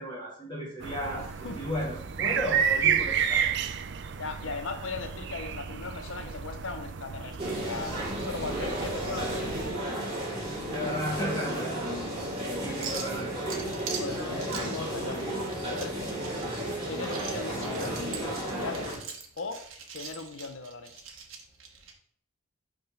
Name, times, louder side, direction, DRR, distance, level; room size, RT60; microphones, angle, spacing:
voice 1, 0.0-3.5 10.7-12.1 12.6-13.5, equal, 20° left, 2.6 m, -34 dB
sound 1, 0.8-9.7, right 7 dB, 60° right, 0.4 m, -31 dB
voice 2, 1.2-1.6 4.2-9.9 13.9-16.3 16.9-19.0 19.4-19.6 19.9-21.1, left 4 dB, 70° left, 0.7 m, -39 dB
sound 2, 7.4-19.0, right 1 dB, 25° right, 2.5 m, -33 dB
sound 3, 11.9-21.9, right 6 dB, 80° right, 1.2 m, -44 dB
5.5 x 3.7 x 5.7 m
head